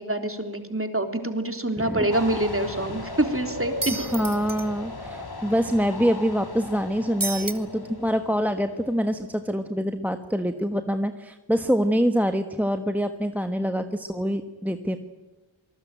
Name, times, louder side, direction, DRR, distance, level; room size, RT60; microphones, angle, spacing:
voice 1, 0.0-3.9, right 1 dB, 25° right, 6 dB, 3.4 m, -26 dB
voice 2, 1.8-2.1 3.9-15.0, equal, 5° right, 7 dB, 1.3 m, -25 dB
sound 1, 2.1-9.5, left 2 dB, 50° left, 3.1 m, -37 dB
sound 2, 3.8-4.6 7.2-7.5, right 2 dB, 45° right, 2.1 m, -30 dB
26.5 x 20.0 x 9.0 m, 1.1 s
wide cardioid pair, 40°, 47 cm